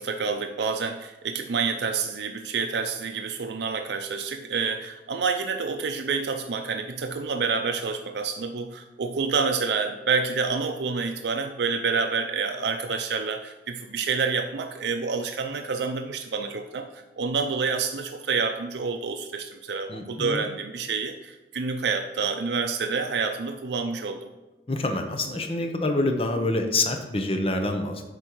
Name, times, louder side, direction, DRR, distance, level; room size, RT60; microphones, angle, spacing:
voice 1, 0.0-24.3, right 5 dB, 80° right, 5 dB, 0.5 m, -28 dB
voice 2, 19.9-20.4 24.7-28.0, left 2 dB, 30° left, 5 dB, 0.8 m, -26 dB
8.4 x 5.3 x 4.5 m, 1.1 s
head